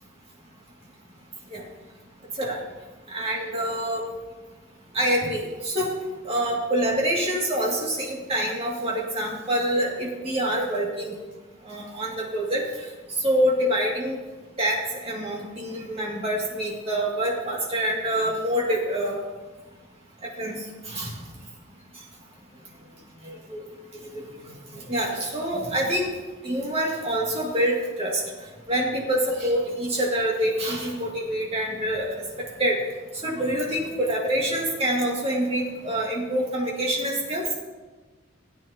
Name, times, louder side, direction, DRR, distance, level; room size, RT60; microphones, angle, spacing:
voice 1, 3.1-4.0 4.9-5.9 6.2-11.2 11.6-12.6 13.2-14.2 14.6-19.2 20.4-20.6 20.9-21.1 23.2-23.6 24.1-24.2 24.7-26.1 26.4-28.2 28.7-32.2 32.6-32.8 33.2-37.4, right 1 dB, 30° right, -3 dB, 2.4 m, -26 dB
17.0 x 8.8 x 2.9 m, 1.3 s
head